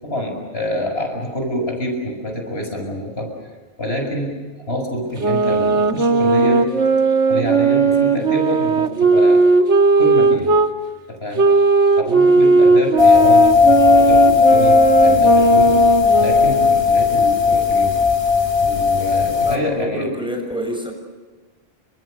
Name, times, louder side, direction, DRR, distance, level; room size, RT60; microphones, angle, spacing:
voice 1, 0.0-3.3 3.8-4.4 4.7-6.7 7.3-9.5 10.0-10.5 11.1-11.5 12.0-15.8 16.1-18.0 18.6-20.1, equal, 60° left, 3 dB, 6.7 m, -26 dB
sound 1, 5.2-10.7 11.4-16.9, right 4 dB, 80° right, 1.9 m, -16 dB
sound 2, 13.0-19.6, left 6 dB, 30° left, 3.1 m, -15 dB
voice 2, 19.4-20.9, equal, 5° right, 3 dB, 6.8 m, -27 dB
30.0 x 26.5 x 6.7 m, 1.3 s
omnidirectional pair, 1.2 m